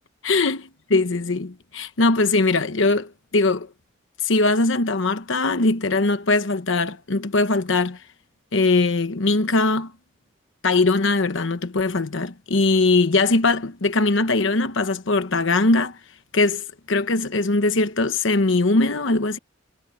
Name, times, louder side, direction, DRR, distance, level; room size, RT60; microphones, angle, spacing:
voice 1, 0.2-0.6 0.9-3.7 4.2-8.0 8.5-9.9 10.6-16.0 16.3-19.4, left 3 dB, 75° left, 1.1 m, -21 dB
head